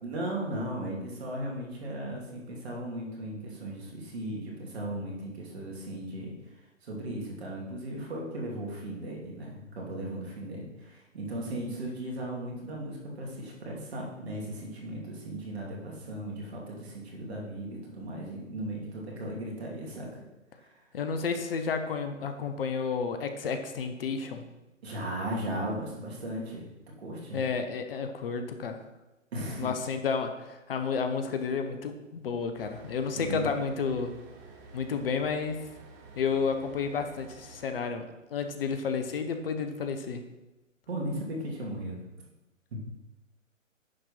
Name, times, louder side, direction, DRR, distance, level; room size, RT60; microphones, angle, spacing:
voice 1, 0.0-6.3 6.8-20.2 20.6-20.8 24.8-26.6 27.0-27.4 29.3-29.7 33.3-33.5 40.9-42.1 42.7-42.8, right 1 dB, 50° right, -2 dB, 2.9 m, -36 dB
voice 2, 20.9-24.4 27.3-28.8 29.6-34.1 34.7-35.6 36.2-38.0 38.3-40.2, left 5 dB, 45° left, 7 dB, 1.0 m, -31 dB
sound 1, 32.6-37.7, right 3 dB, 20° right, 1.2 m, -51 dB
10.0 x 4.4 x 5.7 m, 1.0 s
figure-of-eight pair, 130°, 39 cm